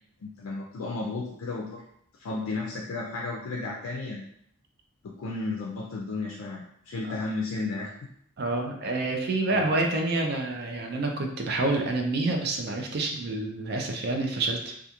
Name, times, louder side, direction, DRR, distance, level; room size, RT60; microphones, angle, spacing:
voice 1, 0.2-1.8 2.2-4.3 5.0-7.9 9.5-9.6, left 3 dB, 80° left, -2 dB, 0.4 m, -33 dB
voice 2, 8.4-14.7, right 2 dB, 50° right, 3 dB, 0.4 m, -28 dB
2.3 x 2.3 x 2.8 m, 0.70 s
head